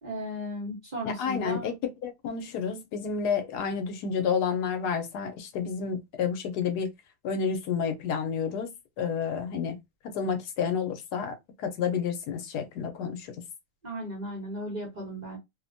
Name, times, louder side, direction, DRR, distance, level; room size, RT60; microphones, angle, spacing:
voice 1, 0.0-1.7 13.8-15.4, equal, 35° right, 0.8 m, -35 dB
voice 2, 1.0-6.9 7.2-9.8 10.0-13.3, left 6 dB, 80° left, 1.2 m, -30 dB
2.9 x 2.1 x 2.6 m
omnidirectional pair, 1.7 m